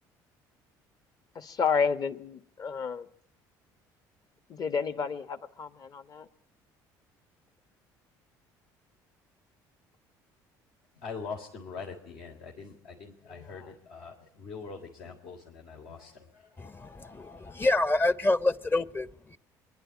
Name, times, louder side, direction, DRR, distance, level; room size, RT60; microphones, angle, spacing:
voice 1, 1.3-3.1 4.5-6.3 13.3-13.7, left 6 dB, 45° left, 1.6 m, -31 dB
voice 2, 10.9-16.6, left 5 dB, 75° left, 3.4 m, -43 dB
voice 3, 16.6-19.4, left 2 dB, 25° left, 0.9 m, -27 dB
24.0 x 11.0 x 9.8 m
supercardioid pair, 80°, 9 cm